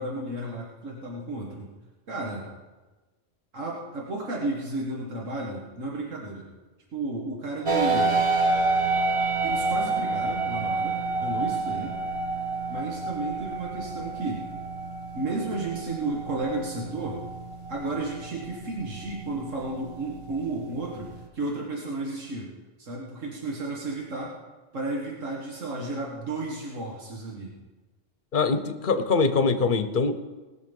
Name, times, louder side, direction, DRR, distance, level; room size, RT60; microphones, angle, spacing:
voice 1, 0.0-1.7 2.1-2.4 3.5-6.5 6.9-8.1 9.4-11.9 12.7-14.4 15.1-17.2 17.7-22.5 22.8-24.3 24.7-27.5, right 2 dB, 90° right, -2 dB, 2.0 m, -33 dB
sound 1, 7.7-21.3, right 3 dB, 25° right, 1.0 m, -29 dB
voice 2, 28.3-30.2, left 4 dB, 45° left, 10 dB, 0.9 m, -23 dB
19.5 x 6.7 x 5.3 m, 1.2 s
omnidirectional pair, 1.3 m